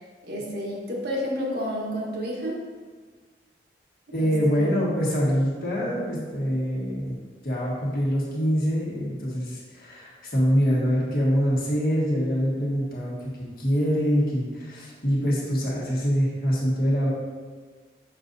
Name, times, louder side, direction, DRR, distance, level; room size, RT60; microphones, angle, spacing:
voice 1, 0.3-2.6 4.2-4.7 14.6-14.8, equal, 60° right, -3 dB, 1.2 m, -31 dB
voice 2, 4.1-7.2 7.4-13.2 13.6-17.1, equal, 55° left, -5 dB, 1.6 m, -24 dB
7.1 x 5.3 x 2.6 m, 1.5 s
head